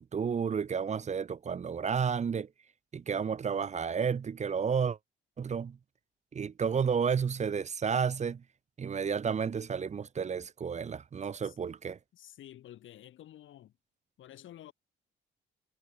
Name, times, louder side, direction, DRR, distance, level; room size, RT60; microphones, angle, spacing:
voice 1, 0.0-2.5 2.9-5.0 5.4-5.8 6.3-8.4 8.8-12.0, right 6 dB, 35° right, 0.8 m, -31 dB
voice 2, 11.4-11.7 12.1-13.7 14.2-14.7, left 12 dB, 75° left, 7.0 m, -51 dB
cardioid pair, 90°, 20 cm